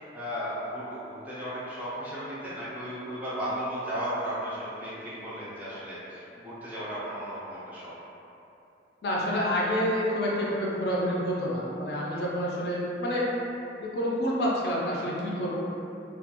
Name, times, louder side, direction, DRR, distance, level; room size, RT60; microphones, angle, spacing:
voice 1, 0.1-7.9 12.1-12.2, equal, 10° right, -10 dB, 0.5 m, -35 dB
voice 2, 9.0-13.3 13.8-15.6, equal, 55° left, -5 dB, 0.4 m, -28 dB
2.2 x 2.1 x 2.8 m, 2.8 s
head